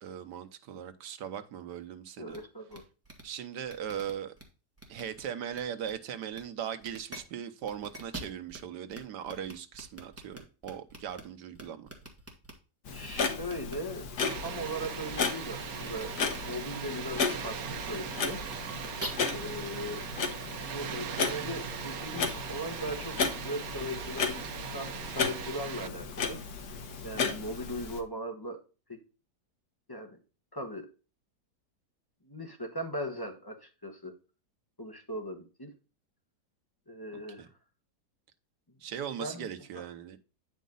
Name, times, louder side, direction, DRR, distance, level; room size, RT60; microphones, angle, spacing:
voice 1, 0.0-2.4 3.2-4.3 4.9-11.9 27.1-27.4 37.4-37.5 38.8-40.2, right 9 dB, 90° right, 1.5 m, -39 dB
voice 2, 2.2-2.8 12.9-14.1 14.4-17.6 17.9-18.4 19.3-20.0 20.6-23.1 23.4-24.4 24.7-26.4 27.0-28.6 28.9-29.0 29.9-30.2 30.5-30.9 32.2-34.2 34.8-35.7 36.9-37.5 39.2-39.5, equal, 15° left, 1.3 m, -38 dB
sound 1, 2.3-2.4 2.7-2.8 3.0-3.2 3.7-4.4 4.8-5.2 5.5-5.9 6.3-6.4 6.8-7.2 7.6-8.6 8.9-9.0 9.2-11.2 11.5-12.5 13.5-13.7 14.3-14.5 14.8-14.9 15.8-16.0 16.3-16.4 17.2-17.4 17.8-18.0 18.4-19.1, right 1 dB, 10° right, 1.8 m, -44 dB
Clock, 12.9-28.0, left 5 dB, 70° left, 1.7 m, -35 dB
Water, 14.2-25.9, right 9 dB, 65° right, 1.1 m, -40 dB
9.3 x 5.2 x 3.9 m
omnidirectional pair, 1.8 m